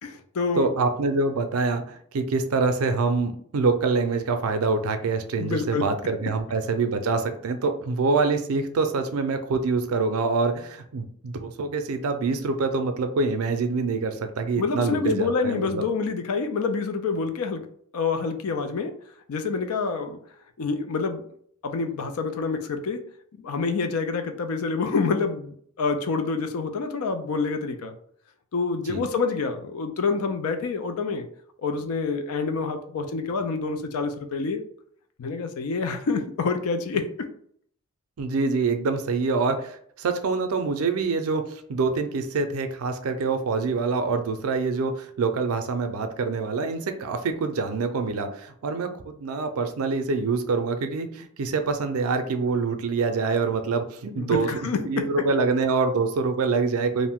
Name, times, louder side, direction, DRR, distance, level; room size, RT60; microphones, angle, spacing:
voice 1, 0.0-0.7 5.4-5.9 14.6-17.7 17.9-18.9 19.3-20.2 20.6-21.2 21.6-23.0 23.4-27.9 28.5-31.3 31.6-34.6 35.2-37.1 54.2-55.0, left 4 dB, 85° left, 7 dB, 0.4 m, -27 dB
voice 2, 0.6-15.8 28.9-29.0 38.2-57.1, right 4 dB, 85° right, 7 dB, 0.4 m, -25 dB
2.5 x 2.1 x 3.5 m, 0.63 s
head